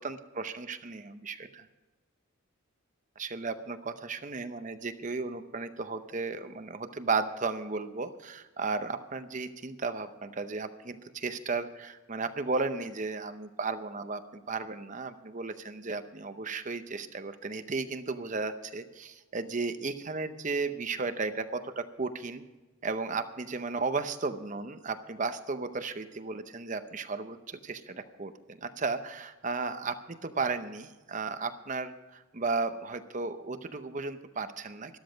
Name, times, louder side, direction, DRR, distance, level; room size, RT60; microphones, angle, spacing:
voice 1, 0.0-1.7 3.2-22.4 22.8-35.0, right 4 dB, 35° right, 10 dB, 0.7 m, -34 dB
13.0 x 12.5 x 5.1 m, 1.2 s
head